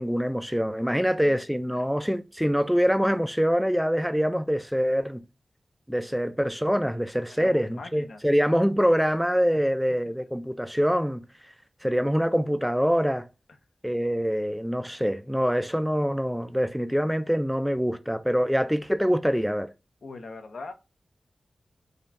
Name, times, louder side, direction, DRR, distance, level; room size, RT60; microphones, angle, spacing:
voice 1, 0.0-5.2 5.9-11.2 11.8-13.3 13.8-19.7, equal, ahead, 0.3 m, -25 dB
voice 2, 0.9-1.4 1.7-1.9 7.3-8.2 20.0-20.7, left 3 dB, 80° left, 0.7 m, -41 dB
5.1 x 2.3 x 2.5 m
wide cardioid pair, 100°, 0 cm